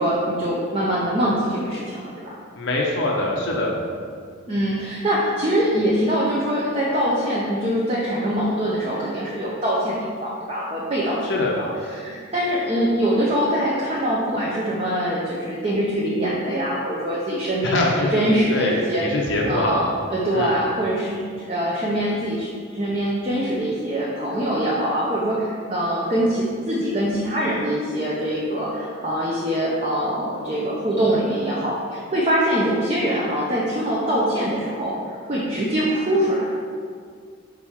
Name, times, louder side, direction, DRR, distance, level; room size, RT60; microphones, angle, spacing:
voice 1, 0.0-2.4 4.5-19.0 19.4-21.2 21.5-36.4, equal, 30° right, -6 dB, 0.7 m, -23 dB
voice 2, 2.6-3.7 11.3-11.5 17.6-19.9 20.3-20.6, left 1 dB, 55° left, -2 dB, 0.8 m, -23 dB
4.9 x 4.6 x 5.6 m, 2.1 s
head